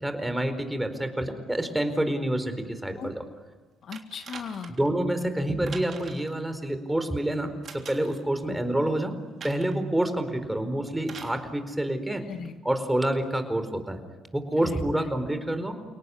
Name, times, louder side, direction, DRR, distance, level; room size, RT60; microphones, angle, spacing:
voice 1, 0.0-3.1 4.7-9.1 9.4-12.2 12.6-14.0 14.3-15.8, right 1 dB, 10° right, 9 dB, 4.5 m, -28 dB
voice 2, 3.8-4.8 8.5-8.6 12.2-12.5 14.6-15.0, left 6 dB, 55° left, 8 dB, 1.7 m, -38 dB
sound 1, 3.9-4.9 5.7-6.3 7.6-8.2 9.4-9.8 11.0-11.4 12.4-12.5, right 6 dB, 50° right, 3.5 m, -43 dB
30.0 x 18.0 x 9.7 m, 1.3 s
supercardioid pair, 65°, 0 cm